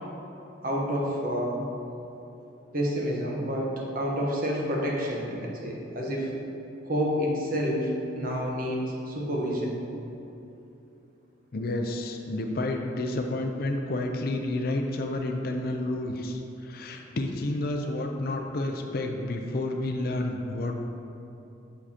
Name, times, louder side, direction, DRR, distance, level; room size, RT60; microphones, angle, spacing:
voice 1, 0.6-1.6 2.7-6.3 6.8-9.8, equal, 45° right, -2 dB, 1.0 m, -29 dB
voice 2, 11.5-20.9, left 2 dB, 45° left, 3 dB, 0.4 m, -30 dB
7.0 x 6.2 x 2.8 m, 2.9 s
head